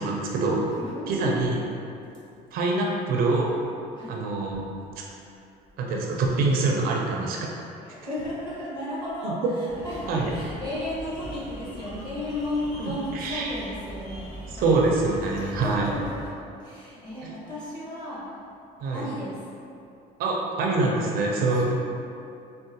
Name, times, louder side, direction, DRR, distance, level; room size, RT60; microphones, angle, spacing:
voice 1, 0.0-0.7 1.1-1.6 2.5-3.5 4.1-4.7 5.8-7.4 9.2-9.3 10.1-10.3 13.1-13.6 14.5-16.0 18.8-19.1 20.2-21.7, right 3 dB, 60° right, -1 dB, 0.4 m, -25 dB
voice 2, 0.8-1.3 3.9-4.2 7.8-14.8 15.4-16.2 16.6-18.3 18.9-19.4 21.6-21.7, left 1 dB, 25° left, -9 dB, 1.0 m, -34 dB
sound 1, 9.7-16.3, equal, 65° left, 1.4 m, -40 dB
3.7 x 2.1 x 2.6 m, 2.6 s
cardioid pair, 140°, 17 cm